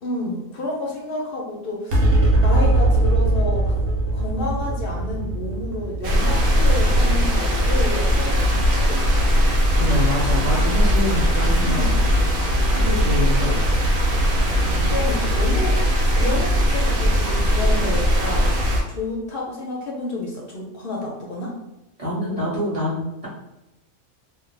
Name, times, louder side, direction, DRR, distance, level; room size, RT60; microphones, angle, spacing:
voice 1, 0.0-2.1 2.4-3.8 4.1-9.0 11.6-12.1 14.9-15.8 16.2-18.5 18.9-21.6, left 2 dB, 60° left, -2 dB, 0.6 m, -30 dB
sound 1, 1.9-8.6, right 1 dB, 65° right, 0.8 m, -21 dB
sound 2, 6.0-18.8, equal, 85° right, 1.1 m, -19 dB
voice 2, 9.7-11.9 12.7-13.8 14.6-15.1 22.0-23.3, left 1 dB, 30° right, -8 dB, 0.9 m, -26 dB
2.4 x 2.1 x 3.1 m, 0.91 s
omnidirectional pair, 1.4 m